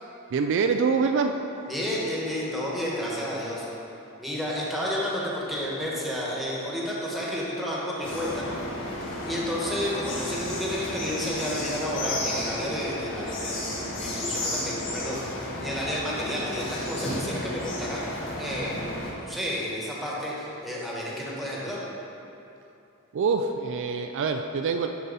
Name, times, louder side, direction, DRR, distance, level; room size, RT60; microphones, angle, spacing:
voice 1, 0.3-1.4 23.1-24.9, right 5 dB, 55° right, 6 dB, 0.3 m, -25 dB
voice 2, 1.7-3.7 4.2-8.6 9.3-18.0 18.4-21.8, equal, ahead, -6 dB, 1.3 m, -31 dB
sound 1, 8.0-19.1, left 1 dB, 60° left, 1.8 m, -33 dB
11.5 x 4.1 x 4.0 m, 2.8 s
head